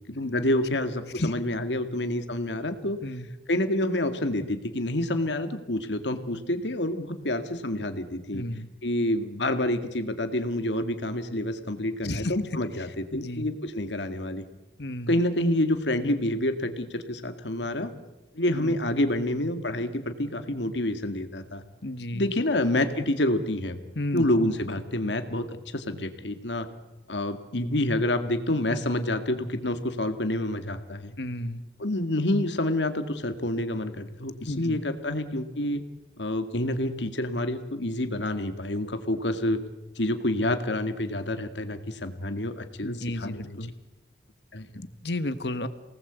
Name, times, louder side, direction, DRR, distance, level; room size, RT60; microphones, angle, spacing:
voice 1, 0.1-3.0 3.5-8.4 8.8-14.4 15.1-17.9 18.3-21.6 22.1-23.8 24.1-26.7 27.1-31.1 31.8-35.8 36.2-39.6 40.0-43.6 44.5-44.7, left 1 dB, 85° left, 8 dB, 2.1 m, -28 dB
voice 2, 8.3-8.7 12.0-12.3 13.1-13.5 14.8-15.2 18.5-18.8 21.8-22.2 23.9-24.2 31.2-31.6 34.4-34.8 42.8-43.7 44.7-45.7, left 1 dB, 70° left, 11 dB, 1.5 m, -32 dB
28.0 x 18.5 x 8.2 m, 1.0 s
head